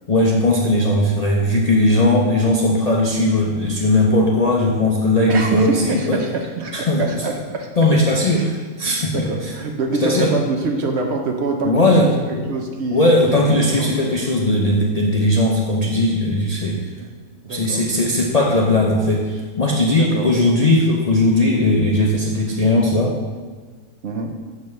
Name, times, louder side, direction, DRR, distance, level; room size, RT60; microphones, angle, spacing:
voice 1, 0.1-6.2 6.7-7.2 7.8-9.5 10.0-10.3 11.6-12.5 12.9-16.9 17.5-23.1, left 1 dB, 50° left, -3 dB, 0.4 m, -18 dB
voice 2, 5.3-7.7 8.4-8.5 9.1-12.1 12.5-14.0 17.0-17.1 17.4-17.9 19.9-20.3 24.0-24.3, right 3 dB, 60° right, 3 dB, 0.8 m, -25 dB
7.1 x 6.2 x 3.2 m, 1.4 s
omnidirectional pair, 1.5 m